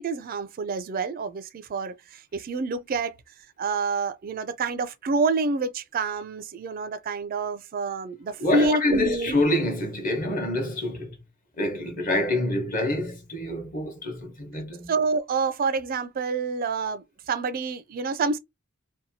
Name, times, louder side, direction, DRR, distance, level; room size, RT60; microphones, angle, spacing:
voice 1, 0.0-3.2 3.6-9.3 14.9-18.4, right 4 dB, 40° right, 0.3 m, -27 dB
voice 2, 8.4-11.1 11.6-14.9, left 1 dB, 40° left, 0.9 m, -26 dB
2.7 x 2.2 x 2.6 m
head